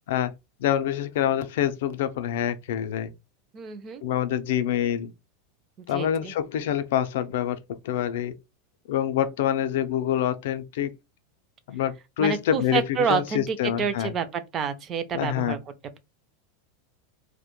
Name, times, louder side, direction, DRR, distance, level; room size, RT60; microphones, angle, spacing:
voice 1, 0.6-3.1 4.0-5.1 5.9-7.6 7.8-8.3 8.9-11.0 11.7-14.1 15.1-15.6, left 10 dB, 70° left, 0.3 m, -26 dB
voice 2, 3.5-4.0 5.9-6.3 12.2-15.6, right 6 dB, 25° right, 0.3 m, -28 dB
2.1 x 2.1 x 2.9 m
supercardioid pair, 160°, 0 cm